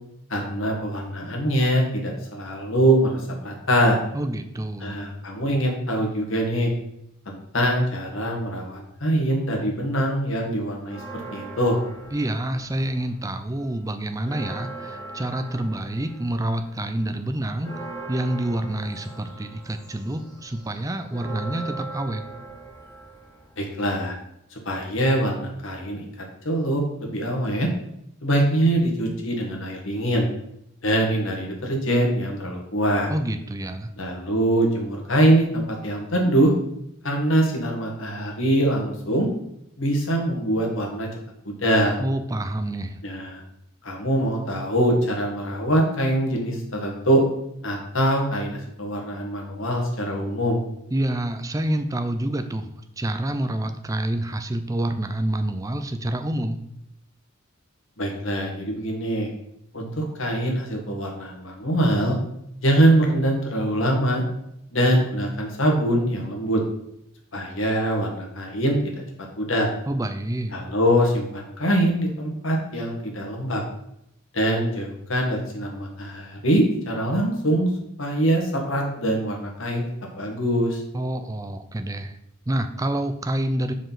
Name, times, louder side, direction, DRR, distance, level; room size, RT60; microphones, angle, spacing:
voice 1, 0.3-4.0 4.8-6.7 7.3-11.0 11.3-11.8 23.6-24.1 24.5-26.0 26.5-27.7 28.2-30.3 30.8-33.1 34.0-36.5 37.0-39.3 39.8-41.1 41.5-42.0 43.0-43.4 43.8-47.2 47.6-50.6 58.0-59.3 59.7-62.2 62.6-64.2 64.7-66.6 67.3-68.8 69.4-69.7 70.5-73.6 74.3-77.7 78.0-79.9 80.2-80.8, right 1 dB, 65° left, 0 dB, 1.8 m, -23 dB
voice 2, 4.1-5.0 12.1-17.7 18.1-22.3 33.1-33.9 42.0-43.0 50.9-56.6 69.9-70.6 80.9-82.2 82.5-83.7, right 1 dB, 15° right, 8 dB, 0.5 m, -27 dB
sound 1, 10.8-13.2 13.6-24.1, right 3 dB, 15° left, 1.7 m, -40 dB
5.1 x 5.0 x 5.7 m, 0.79 s
head